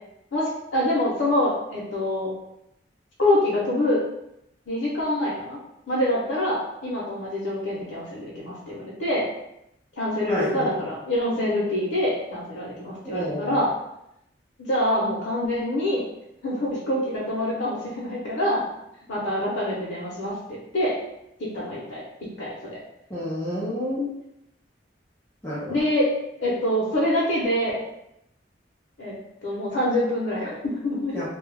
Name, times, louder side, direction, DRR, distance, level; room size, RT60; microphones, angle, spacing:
voice 1, 0.3-2.3 3.2-4.0 4.7-5.6 5.9-9.3 10.0-13.7 14.6-16.0 16.4-18.6 19.1-20.3 20.7-20.9 21.4-22.0 22.4-22.8 24.0-24.1 25.7-26.1 26.4-27.8 29.0-29.1 29.4-31.2, left 1 dB, 90° left, -7 dB, 0.7 m, -25 dB
voice 2, 10.3-10.7 13.0-13.6 23.1-24.0 25.4-25.8 31.1-31.3, equal, 10° left, -9 dB, 0.5 m, -29 dB
2.3 x 2.1 x 3.2 m, 0.81 s
head